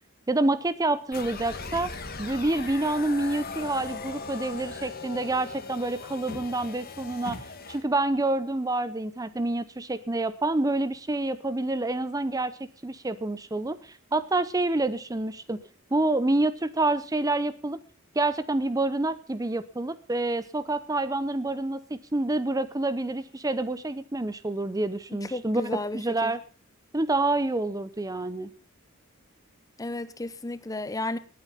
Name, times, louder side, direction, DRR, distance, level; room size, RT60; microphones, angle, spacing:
voice 1, 0.3-1.9 2.2-7.4 7.7-15.6 15.9-17.8 18.1-26.4 26.9-28.5, right 2 dB, 15° right, 0.6 m, -27 dB
sound 1, 1.1-7.8, left 4 dB, 45° left, 1.8 m, -39 dB
voice 2, 25.3-26.3 29.8-31.2, left 2 dB, 15° left, 0.7 m, -33 dB
18.5 x 9.0 x 5.6 m
head